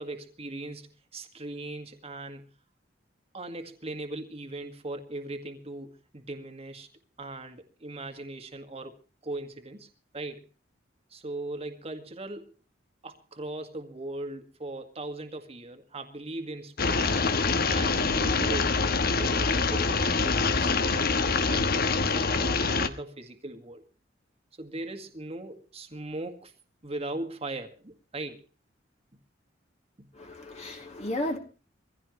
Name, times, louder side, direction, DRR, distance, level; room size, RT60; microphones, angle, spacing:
voice 1, 0.0-2.5 3.3-6.9 7.2-9.0 9.2-9.9 10.1-10.5 11.1-12.5 13.0-17.2 17.6-21.8 22.0-23.8 24.6-26.5 26.8-28.5 30.0-30.1, right 2 dB, 35° right, 1.9 m, -39 dB
sound 1, 16.8-22.9, left 4 dB, 55° left, 1.1 m, -25 dB
voice 2, 30.1-31.4, left 1 dB, 40° left, 2.7 m, -33 dB
23.5 x 16.0 x 3.1 m
head